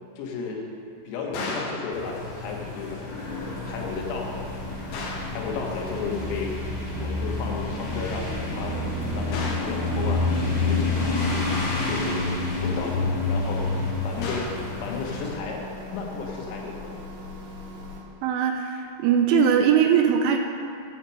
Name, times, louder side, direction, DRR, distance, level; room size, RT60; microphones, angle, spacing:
voice 1, 0.2-0.7 1.1-3.1 3.7-4.5 5.3-6.6 7.0-10.3 10.6-11.4 11.8-12.3 12.6-13.7 14.0-14.5 14.8-15.6 15.9-17.0, left 4 dB, 90° left, -1 dB, 4.1 m, -33 dB
sound 1, 1.3-1.9 4.9-5.4 9.3-9.8 14.2-14.7, left 3 dB, 70° left, 2.7 m, -34 dB
sound 2, 1.9-15.3, left 3 dB, 45° left, 4.2 m, -29 dB
sound 3, 3.2-18.0, left 1 dB, 60° right, 2.5 m, -40 dB
voice 2, 18.2-20.4, right 7 dB, 80° right, 4 dB, 2.9 m, -20 dB
12.0 x 5.6 x 7.7 m, 2.5 s
omnidirectional pair, 5.9 m